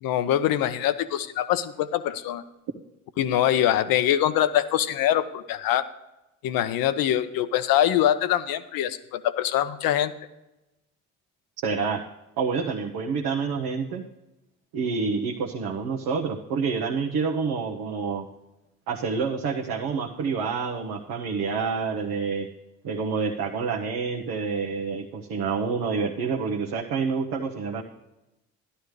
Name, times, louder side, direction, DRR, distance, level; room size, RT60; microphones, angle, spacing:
voice 1, 0.0-2.4 3.2-5.8 6.4-10.1, left 11 dB, 65° left, 13 dB, 0.8 m, -24 dB
voice 2, 11.6-12.0 12.4-14.0 14.7-18.2 18.9-22.5 22.8-27.8, right 5 dB, 65° right, 0 dB, 1.0 m, -28 dB
12.5 x 11.5 x 3.2 m, 0.95 s
hypercardioid pair, 45°, 37 cm